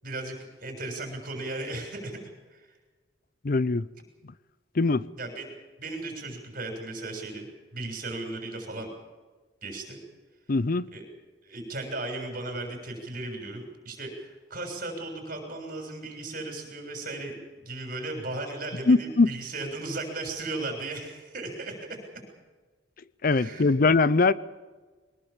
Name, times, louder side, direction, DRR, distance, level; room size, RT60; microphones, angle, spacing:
voice 1, 0.0-2.2 2.5-2.7 5.1-5.5 5.8-8.9 9.6-10.0 10.9-11.0 11.4-22.0 23.2-23.7, right 2 dB, 45° right, 7.0 m, -36 dB
voice 2, 3.4-3.9 4.8-5.1 10.5-10.9 18.9-19.3 23.2-24.3, left 3 dB, 50° left, 0.6 m, -21 dB
23.0 x 20.0 x 7.3 m
head